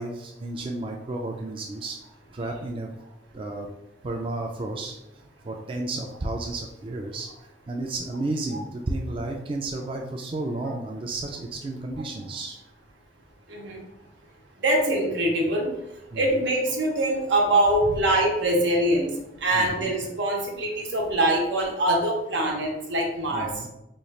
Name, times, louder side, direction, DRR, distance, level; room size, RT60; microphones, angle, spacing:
voice 1, 0.0-2.0 2.3-2.9 3.3-3.7 4.0-4.9 5.4-7.3 7.7-12.6 16.1-16.4 19.5-19.9 23.3-23.7, right 2 dB, 30° right, 1 dB, 0.3 m, -32 dB
voice 2, 13.5-13.8 14.6-15.7 16.1-19.1 19.4-23.5, right 1 dB, 90° right, 0 dB, 0.9 m, -23 dB
3.1 x 2.4 x 4.1 m, 0.88 s
head